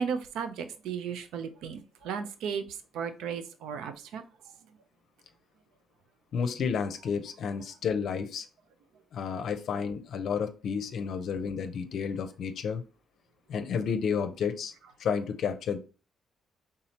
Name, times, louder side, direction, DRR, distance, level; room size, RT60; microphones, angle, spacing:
voice 1, 0.0-4.2, right 6 dB, 85° right, 0.5 m, -35 dB
voice 2, 6.3-8.5 9.1-12.8 13.5-14.7 15.0-15.8, left 6 dB, 65° left, 0.6 m, -31 dB
4.2 x 3.7 x 2.8 m
cardioid pair, 90°, 0 cm